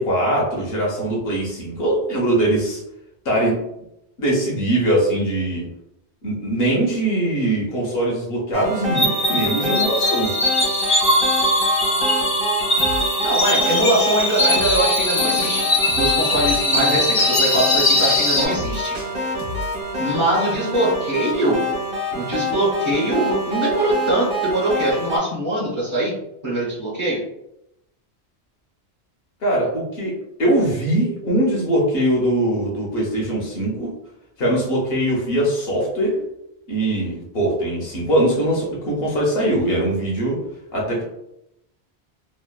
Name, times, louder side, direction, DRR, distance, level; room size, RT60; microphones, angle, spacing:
voice 1, 0.0-2.8 3.2-3.6 4.2-5.7 6.2-10.3 29.4-33.9 34.4-36.2 36.7-40.4 40.7-41.0, right 1 dB, 65° left, -3 dB, 0.9 m, -21 dB
sound 1, 8.5-25.2, equal, 60° right, 0.9 m, -26 dB
sound 2, 8.9-18.5, left 1 dB, 45° left, 0.5 m, -20 dB
sound 3, 12.8-13.2 13.7-14.1 14.5-15.0 15.4-16.7 17.2-19.8, left 1 dB, 85° right, 0.9 m, -34 dB
voice 2, 13.2-15.7 16.0-18.9 20.0-21.6 22.1-26.1 26.4-27.2, right 1 dB, 30° right, -7 dB, 0.6 m, -22 dB
2.9 x 2.0 x 2.2 m, 0.83 s
omnidirectional pair, 1.1 m